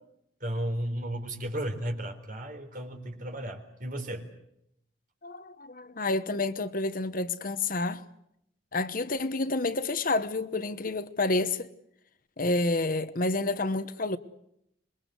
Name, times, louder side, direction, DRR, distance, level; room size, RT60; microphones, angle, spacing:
voice 1, 0.4-4.2, right 1 dB, 45° right, 4.0 m, -34 dB
voice 2, 5.2-8.0 8.7-11.7 12.4-14.2, left 2 dB, 45° left, 1.1 m, -29 dB
26.5 x 22.5 x 8.0 m
head